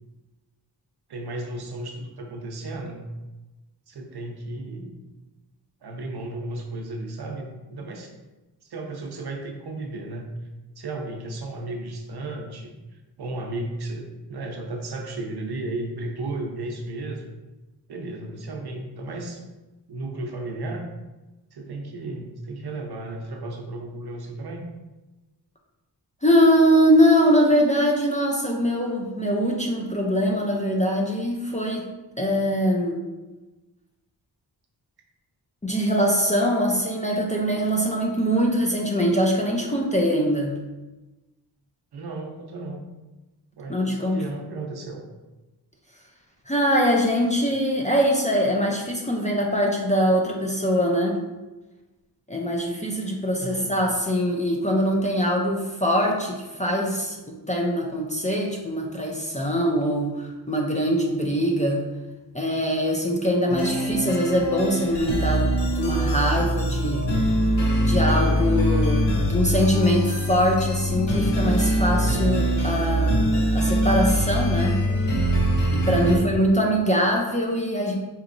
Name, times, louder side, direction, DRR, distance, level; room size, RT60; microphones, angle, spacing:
voice 1, 1.1-3.1 3.9-5.0 5.8-8.1 8.6-10.3 10.8-17.3 17.9-19.4 19.9-20.8 21.5-24.6 41.9-42.8 43.6-45.0 53.4-53.8 75.9-76.2, right 2 dB, 65° right, 1 dB, 0.7 m, -34 dB
voice 2, 26.2-31.8 32.2-33.0 35.6-40.6 43.7-44.2 46.5-51.2 52.3-61.8 62.3-67.1 67.8-74.8 75.1-75.2 75.7-77.9, equal, 20° left, -1 dB, 0.4 m, -23 dB
sound 1, 63.5-76.2, equal, 85° left, 0.8 m, -23 dB
4.5 x 3.0 x 2.5 m, 1.1 s
wide cardioid pair, 135°, 41 cm